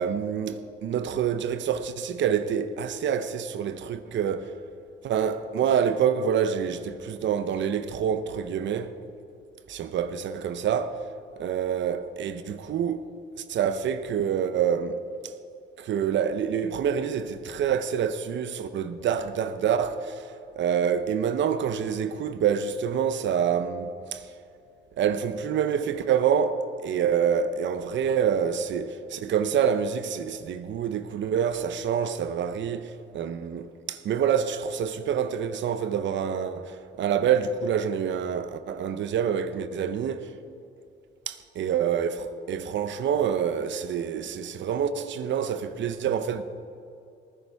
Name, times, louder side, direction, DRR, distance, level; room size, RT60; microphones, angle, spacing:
voice 1, 0.0-4.5 5.0-9.0 9.7-11.0 11.4-13.1 13.5-15.0 15.2-15.3 15.8-24.3 25.0-40.3 41.3-46.4, right 8 dB, 70° right, 0.9 m, -27 dB
19.0 x 10.0 x 4.7 m
cardioid pair, 90°, 20 cm